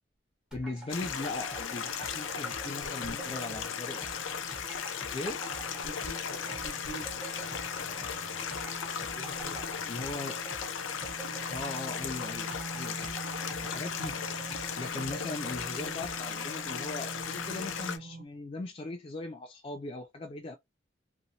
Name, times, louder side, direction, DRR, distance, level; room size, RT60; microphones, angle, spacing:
voice 1, 0.5-4.2 5.1-5.4 9.9-10.4 11.5-13.2 13.6-14.2 14.8-20.6, left 2 dB, 30° left, 0.3 m, -39 dB
sound 1, 0.5-16.4, right 2 dB, 5° right, 0.9 m, -48 dB
sound 2, 0.6-18.3, right 3 dB, 50° right, 0.4 m, -47 dB
Stream, 0.9-18.0, left 7 dB, 90° left, 0.5 m, -36 dB
voice 2, 2.6-3.4 5.6-8.6 9.1-10.1, equal, 65° left, 1.1 m, -47 dB
2.9 x 2.7 x 2.7 m
head